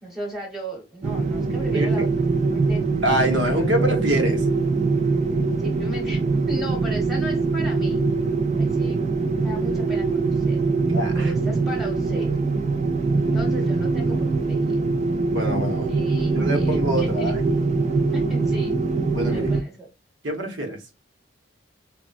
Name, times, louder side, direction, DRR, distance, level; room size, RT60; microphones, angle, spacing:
voice 1, 0.0-2.8 3.2-4.0 5.6-6.2 6.5-8.0 8.6-9.0 9.4-10.6 11.1-12.4 13.2-14.8 15.9-17.3 18.1-18.8 19.2-19.9, right 1 dB, ahead, 1.0 m, -36 dB
sound 1, 1.0-19.6, right 3 dB, 35° right, 0.3 m, -23 dB
voice 2, 1.7-2.1 3.0-4.5 10.9-11.3 15.3-16.0 16.3-17.4 19.1-19.5 20.2-20.8, equal, 75° right, 0.9 m, -25 dB
4.2 x 2.1 x 2.4 m
head